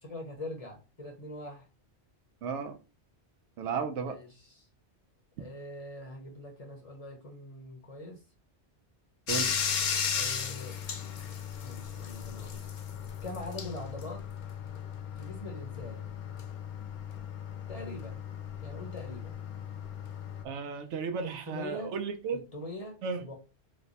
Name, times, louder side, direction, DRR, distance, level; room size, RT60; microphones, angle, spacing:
voice 1, 0.0-1.7 4.0-4.7 5.4-8.2 10.1-10.8 11.6-12.6 13.2-14.2 15.2-16.2 17.7-18.2 18.6-19.4 21.2-21.9 22.3-23.3, left 1 dB, 35° left, 0 dB, 0.8 m, -43 dB
voice 2, 2.4-2.8 3.6-4.1 9.3-9.6 20.4-22.4 23.0-23.2, right 5 dB, 90° right, 6 dB, 0.9 m, -34 dB
Bathtub (filling or washing), 9.3-20.4, left 7 dB, 60° left, 0.5 m, -36 dB
3.2 x 2.1 x 3.9 m, 0.31 s
omnidirectional pair, 1.1 m